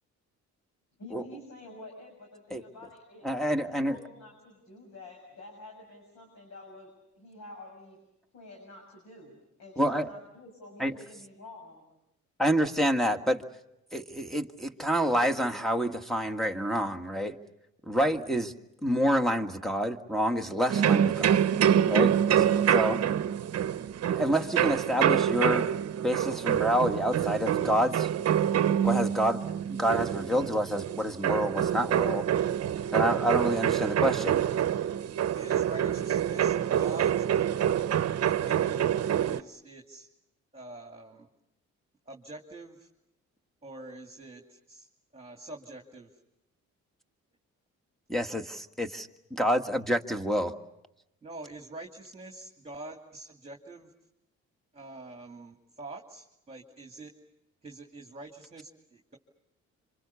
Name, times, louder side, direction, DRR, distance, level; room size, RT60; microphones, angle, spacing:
voice 1, 1.0-8.0 8.3-11.8, left 2 dB, 65° left, 2 dB, 6.7 m, -49 dB
voice 2, 3.2-4.0 9.8-10.1 10.8-10.9 12.4-13.4 13.9-17.4 17.9-18.5 18.8-21.4 21.9-22.4 22.7-23.0 24.1-25.7 26.0-28.1 28.8-32.2 32.9-34.4 48.1-50.5, equal, ahead, 5 dB, 1.7 m, -28 dB
sound 1, 20.7-39.4, right 9 dB, 55° right, 0.9 m, -26 dB
voice 3, 35.3-37.4 38.2-40.1 40.5-41.3 42.1-42.9 43.6-44.9 45.1-46.1 51.2-53.9 54.7-57.1 57.6-59.2, right 2 dB, 20° right, 2 dB, 2.5 m, -45 dB
27.0 x 26.0 x 7.0 m, 0.86 s
cardioid pair, 90°, 30 cm